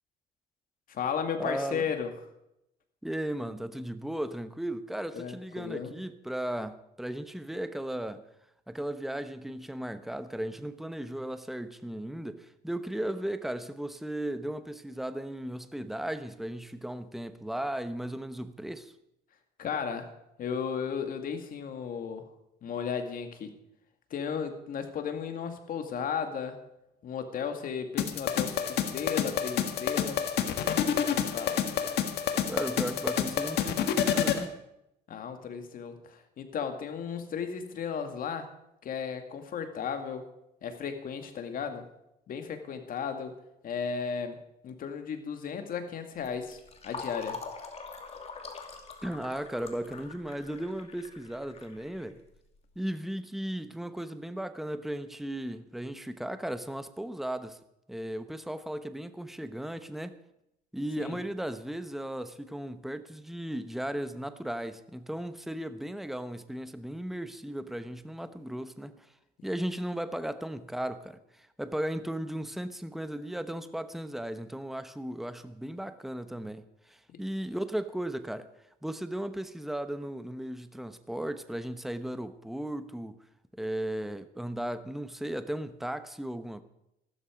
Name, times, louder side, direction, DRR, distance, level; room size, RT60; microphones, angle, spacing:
voice 1, 0.9-2.1 5.1-5.9 19.6-20.1 20.4-22.3 22.6-23.5 24.1-26.6 27.0-30.2 30.9-31.6 35.1-38.5 38.8-40.2 40.6-41.9 42.3-43.4 43.6-44.4 44.6-47.4 61.0-61.2 77.1-77.2, left 6 dB, 55° left, 2.2 m, -35 dB
voice 2, 1.4-1.8 3.0-8.2 8.7-18.9 32.5-34.6 49.0-52.2 52.8-57.6 57.9-60.2 60.7-69.1 69.4-78.5 78.8-83.1 83.6-86.6, right 1 dB, ahead, 1.0 m, -36 dB
sound 1, 28.0-34.4, left 9 dB, 75° left, 1.6 m, -28 dB
Fill (with liquid), 46.2-52.6, left 4 dB, 35° left, 2.5 m, -44 dB
14.5 x 13.0 x 5.1 m
cardioid pair, 110°, 17 cm